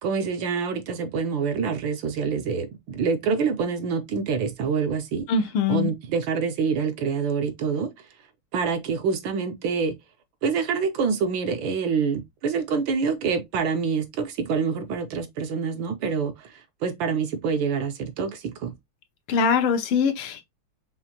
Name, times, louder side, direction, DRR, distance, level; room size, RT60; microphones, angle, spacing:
voice 1, 0.0-5.2 5.7-7.9 8.5-9.9 10.4-16.5 16.8-18.7, right 5 dB, 70° right, 1.3 m, -26 dB
voice 2, 5.3-5.9 19.3-20.4, left 6 dB, 80° left, 1.6 m, -22 dB
5.6 x 2.5 x 2.8 m
omnidirectional pair, 2.4 m